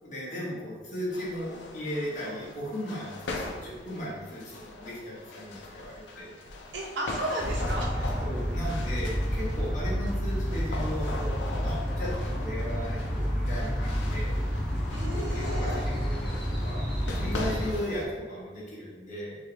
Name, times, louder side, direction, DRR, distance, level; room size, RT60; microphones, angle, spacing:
voice 1, 0.0-6.3 7.9-11.3 11.6-14.3 15.1-16.8 17.1-19.4, equal, 45° left, -6 dB, 1.4 m, -36 dB
sound 1, 1.1-18.0, left 2 dB, 85° left, 0.6 m, -41 dB
voice 2, 6.7-8.0 14.9-15.8, right 1 dB, 75° right, -2 dB, 0.9 m, -34 dB
sound 2, 7.4-17.7, equal, ahead, 1.0 m, -30 dB
4.7 x 2.8 x 3.4 m, 1.4 s
head